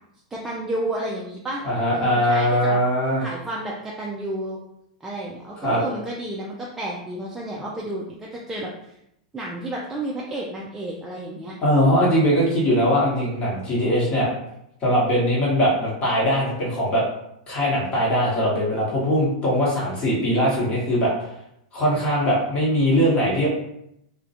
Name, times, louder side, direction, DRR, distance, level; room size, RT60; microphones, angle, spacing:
voice 1, 0.3-1.7 1.9-2.8 3.2-4.6 5.0-8.9 9.3-11.6, right 1 dB, 10° right, -4 dB, 0.4 m, -31 dB
voice 2, 1.6-3.2 5.6-5.8 11.6-14.3 14.8-17.0 17.5-21.1 21.7-23.5, equal, 30° left, -5 dB, 1.1 m, -21 dB
2.3 x 2.1 x 2.7 m, 0.79 s
hypercardioid pair, 120°, 4 cm